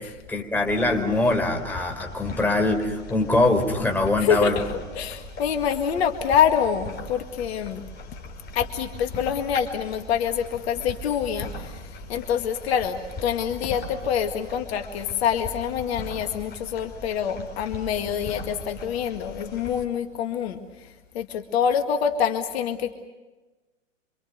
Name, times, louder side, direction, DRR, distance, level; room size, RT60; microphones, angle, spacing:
voice 1, 0.0-4.6, left 2 dB, 5° left, 2 dB, 4.0 m, -23 dB
sound 1, 0.7-19.8, left 2 dB, 25° left, 4.3 m, -40 dB
voice 2, 4.2-4.7 5.0-7.8 8.5-22.9, left 8 dB, 55° left, 6 dB, 2.1 m, -26 dB
27.0 x 26.0 x 6.8 m, 1.2 s
hypercardioid pair, 115°, 37 cm